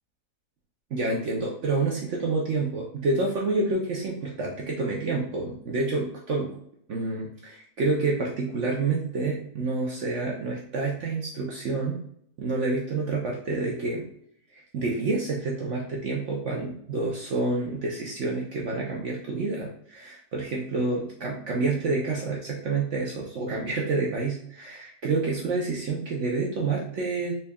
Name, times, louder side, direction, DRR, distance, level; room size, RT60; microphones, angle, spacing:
voice 1, 0.9-6.6 6.9-12.0 12.4-14.1 14.5-27.4, right 3 dB, 65° right, -2 dB, 0.7 m, -28 dB
4.0 x 3.4 x 2.2 m, 0.67 s
omnidirectional pair, 1.8 m